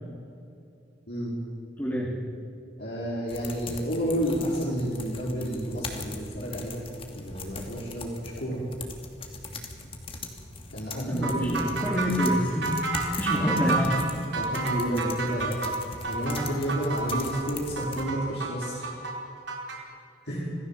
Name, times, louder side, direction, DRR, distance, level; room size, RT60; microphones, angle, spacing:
voice 1, 1.8-2.1 11.1-14.3, equal, 10° left, -4 dB, 3.3 m, -27 dB
voice 2, 2.8-6.8 7.1-8.6 10.7-11.6 13.0-13.2 14.3-15.6 16.1-18.9 20.2-20.5, equal, 65° left, -6 dB, 5.0 m, -30 dB
sound 1, 3.3-18.0, left 3 dB, 30° left, 2.6 m, -41 dB
sound 2, 11.2-19.8, right 4 dB, 80° right, 4.6 m, -31 dB
26.5 x 18.5 x 7.5 m, 2.5 s
head